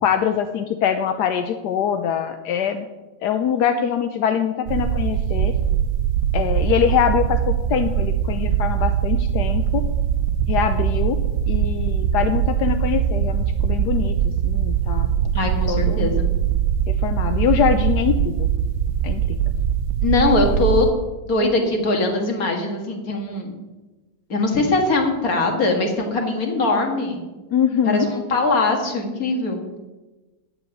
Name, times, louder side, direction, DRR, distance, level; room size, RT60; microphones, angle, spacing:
voice 1, 0.0-2.9 3.2-5.5 6.3-9.9 10.5-11.2 11.5-15.1 15.7-16.1 16.9-18.5 19.0-19.4 27.5-28.1, left 8 dB, 65° left, 8 dB, 1.1 m, -23 dB
sound 1, 4.7-20.9, right 9 dB, 80° right, 0.9 m, -22 dB
voice 2, 15.3-16.3 20.0-20.9 21.2-23.6 24.3-27.2 27.9-29.8, left 2 dB, 45° left, 3 dB, 2.2 m, -21 dB
9.0 x 8.0 x 9.3 m, 1.2 s
omnidirectional pair, 2.3 m